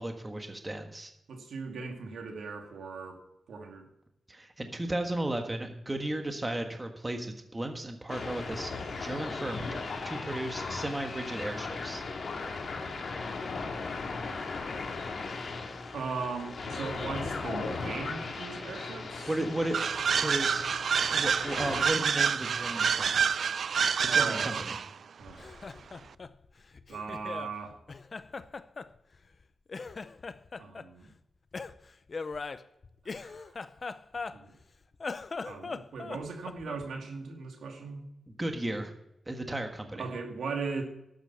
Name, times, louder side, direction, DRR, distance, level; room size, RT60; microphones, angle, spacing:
voice 1, 0.0-1.1 4.3-8.7 9.0-9.8 10.0-12.0 19.3-19.8 20.1-20.6 21.1-23.1 24.0-24.8 38.4-38.9 39.3-40.0, right 1 dB, 15° right, 5 dB, 1.5 m, -34 dB
voice 2, 1.3-3.2 3.5-3.9 15.9-19.3 24.1-24.6 25.2-25.8 26.9-27.8 30.6-31.1 33.0-33.6 34.3-34.5 35.4-38.0 39.9-40.8, right 4 dB, 85° right, 3 dB, 2.3 m, -38 dB
sound 1, 8.1-21.8, left 4 dB, 60° left, 2.1 m, -37 dB
sound 2, 19.7-24.9, right 6 dB, 65° right, 0.4 m, -27 dB
Laughter, 25.2-27.5 27.9-29.4 29.7-30.9 31.5-34.6 34.9-36.9, left 4 dB, 40° left, 0.6 m, -40 dB
12.0 x 9.1 x 5.8 m, 0.85 s
wide cardioid pair, 100°, 0 cm